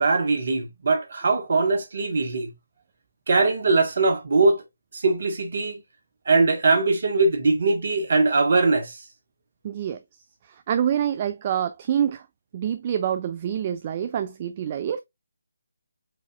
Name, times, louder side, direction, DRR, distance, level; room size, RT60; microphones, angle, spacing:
voice 1, 0.0-2.5 3.3-4.6 4.9-5.8 6.2-9.0, right 3 dB, 50° right, 1.3 m, -21 dB
voice 2, 9.6-10.0 10.4-12.3 12.5-15.0, right 9 dB, 30° right, 0.3 m, -26 dB
4.7 x 4.1 x 2.4 m
figure-of-eight pair, 150°, 0 cm